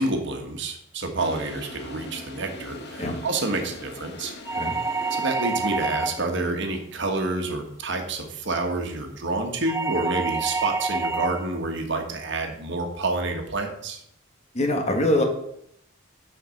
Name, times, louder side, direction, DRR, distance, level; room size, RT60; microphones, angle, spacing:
voice 1, 0.0-4.3 5.1-14.0, right 2 dB, 60° right, 4 dB, 1.4 m, -28 dB
Toilet flush, 1.2-6.4, left 1 dB, 55° left, 1.1 m, -41 dB
sound 1, 4.5-6.4 9.7-11.5, right 3 dB, 15° right, 0.4 m, -27 dB
voice 2, 14.5-15.2, left 1 dB, 35° left, 3 dB, 1.3 m, -23 dB
6.7 x 5.7 x 6.4 m, 0.73 s
head